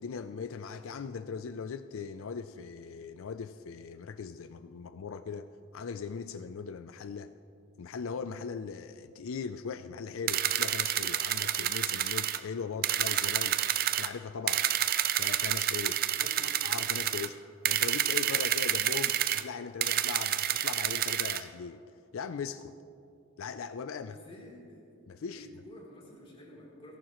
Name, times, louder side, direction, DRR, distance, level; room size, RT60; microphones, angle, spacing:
voice 1, 0.0-7.3 7.8-13.6 14.0-14.7 15.2-16.0 16.4-17.4 17.6-21.8 22.1-22.8 23.4-24.2 25.1-25.5, left 5 dB, 85° left, 11 dB, 0.4 m, -39 dB
sound 1, 10.3-12.4 12.8-14.1 14.5-17.3 17.6-19.4 19.8-21.4, right 11 dB, 45° right, 0.5 m, -29 dB
voice 2, 16.1-16.6 24.0-24.8 25.3-27.0, equal, 25° left, -3 dB, 3.3 m, -50 dB
30.0 x 11.5 x 3.0 m, 2.6 s
head